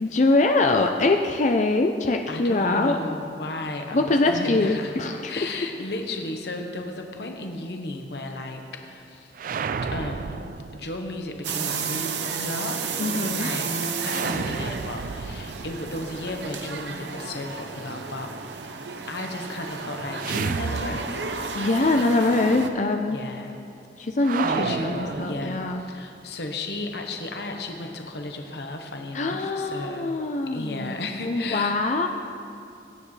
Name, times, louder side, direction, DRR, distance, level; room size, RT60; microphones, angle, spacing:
voice 1, 0.0-3.0 3.9-5.5 13.0-13.5 21.5-23.2 24.0-25.8 29.1-31.0 31.2-32.1, left 2 dB, 40° left, 4 dB, 0.5 m, -23 dB
voice 2, 2.3-5.0 5.2-9.3 9.8-13.7 14.0-21.3 23.1-23.6 24.4-30.1 30.5-31.8, left 2 dB, 65° left, 3 dB, 1.1 m, -34 dB
sound 1, 9.3-11.3 14.0-17.0 20.2-21.6 21.8-21.9 24.2-26.0, right 5 dB, 50° right, 0.3 m, -32 dB
sound 2, 11.4-22.7, right 5 dB, 75° right, 0.8 m, -32 dB
21.5 x 9.6 x 3.3 m, 2.5 s
head